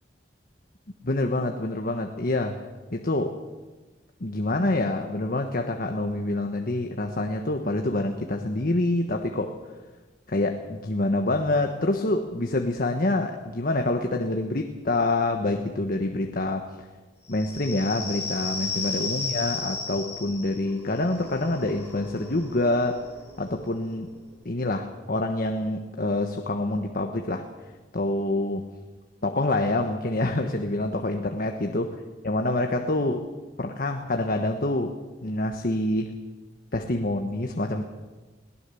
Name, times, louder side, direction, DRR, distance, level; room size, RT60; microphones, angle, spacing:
voice 1, 1.0-2.6 2.9-3.4 4.2-9.5 10.3-16.7 17.3-23.0 23.4-24.1 24.4-27.4 27.9-28.6 29.2-31.9 32.2-33.2 33.6-34.9 35.2-36.1 36.7-37.8, left 2 dB, 50° left, 4 dB, 1.3 m, -26 dB
sound 1, 17.3-24.6, left 4 dB, 15° left, 5.8 m, -35 dB
21.5 x 18.5 x 7.1 m, 1.2 s
head